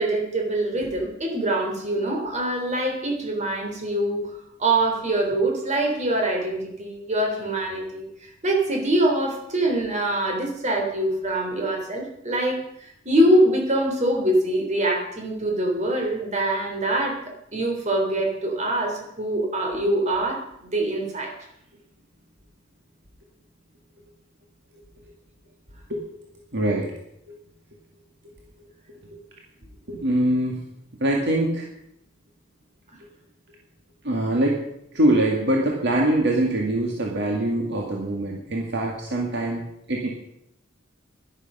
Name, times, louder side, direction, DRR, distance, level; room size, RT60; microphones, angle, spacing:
voice 1, 0.0-21.3, right 1 dB, 35° right, 1 dB, 3.5 m, -24 dB
voice 2, 26.5-26.9 27.3-27.4 29.9-30.6 31.0-31.7 34.0-34.6 34.9-39.6 39.9-40.1, right 1 dB, 60° right, -1 dB, 2.0 m, -23 dB
11.5 x 11.5 x 5.5 m, 0.77 s
head